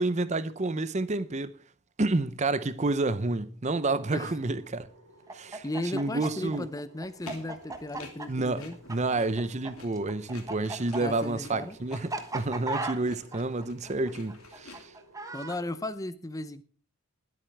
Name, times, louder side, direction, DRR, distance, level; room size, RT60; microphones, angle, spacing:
voice 1, 0.0-1.5 2.0-4.9 5.3-5.6 5.9-6.7 8.3-8.6 8.9-14.9, right 2 dB, 30° right, 0.7 m, -29 dB
sound 1, 4.3-15.9, equal, 75° right, 4.4 m, -57 dB
Chicken rooster, 5.3-9.7 10.0-15.6, right 2 dB, 15° right, 1.2 m, -36 dB
voice 2, 5.6-8.8 11.0-11.8 15.3-16.6, left 1 dB, 15° left, 0.6 m, -35 dB
sound 2, 7.0-14.8, left 3 dB, 75° left, 2.9 m, -50 dB
20.5 x 8.7 x 3.4 m
head